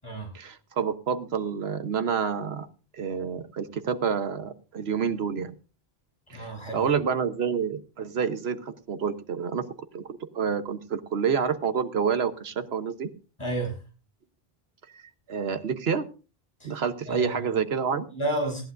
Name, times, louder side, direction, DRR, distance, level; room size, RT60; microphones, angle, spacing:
voice 1, 0.3-2.7 2.9-5.5 6.3-9.6 9.9-13.1 15.3-16.0 16.6-18.1, right 6 dB, 80° right, 10 dB, 1.3 m, -28 dB
voice 2, 6.3-6.9 13.4-13.7 16.6-16.7 17.1-17.3 18.1-18.6, right 1 dB, 25° left, 1 dB, 7.5 m, -31 dB
19.5 x 15.0 x 2.6 m, 0.35 s
omnidirectional pair, 1.0 m